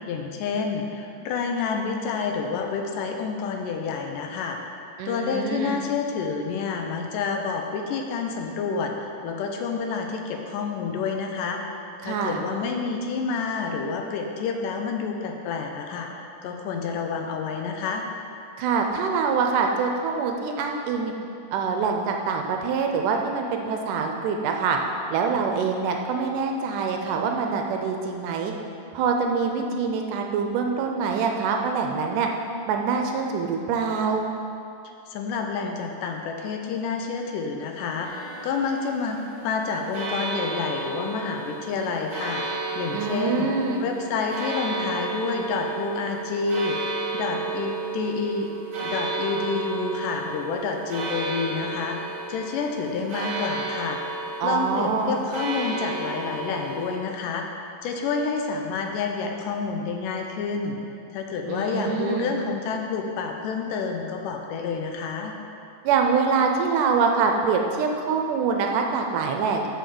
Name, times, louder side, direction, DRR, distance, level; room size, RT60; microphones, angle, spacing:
voice 1, 0.1-11.6 12.0-18.1 35.1-39.2 39.4-42.4 42.8-43.5 43.8-46.8 47.1-48.5 48.8-60.8 61.1-65.4, left 5 dB, 80° left, 3 dB, 2.2 m, -29 dB
voice 2, 5.0-5.8 12.0-12.4 18.6-21.1 21.5-24.8 25.1-28.5 28.9-32.3 32.7-34.2 42.9-43.8 54.4-55.2 61.5-62.3 65.8-69.7, right 5 dB, 80° right, 3 dB, 2.1 m, -25 dB
sound 1, 38.0-57.0, right 3 dB, 55° right, 1.5 m, -33 dB
6.6 x 6.2 x 6.9 m, 2.5 s
omnidirectional pair, 3.9 m